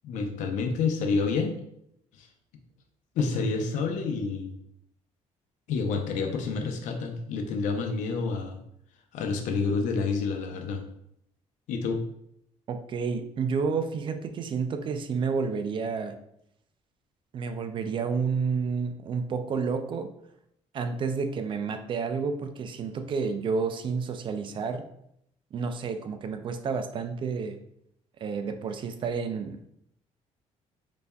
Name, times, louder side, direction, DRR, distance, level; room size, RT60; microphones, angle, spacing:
voice 1, 0.0-1.6 2.1-2.3 3.2-4.6 5.7-8.6 9.1-10.8 11.7-12.0, left 4 dB, 80° left, 4 dB, 0.6 m, -28 dB
voice 2, 12.7-16.2 17.3-20.1 20.7-24.9 25.5-27.6 28.2-29.7, right 5 dB, 40° right, 8 dB, 0.4 m, -30 dB
4.0 x 3.4 x 2.2 m, 0.75 s
cardioid pair, 135°, 12 cm